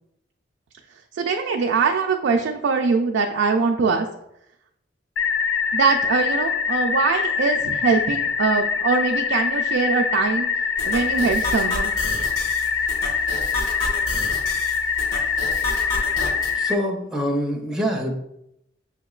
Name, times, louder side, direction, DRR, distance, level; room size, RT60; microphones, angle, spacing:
voice 1, 1.1-4.1 5.7-10.5 10.8-11.9, right 4 dB, 70° right, 2 dB, 0.3 m, -22 dB
sound 1, 5.2-16.8, left 6 dB, 75° left, 0.3 m, -24 dB
sound 2, 10.8-16.5, left 1 dB, 50° left, 1.5 m, -31 dB
voice 2, 16.5-18.1, equal, 5° right, 0 dB, 0.5 m, -25 dB
6.5 x 2.9 x 2.3 m, 0.80 s
head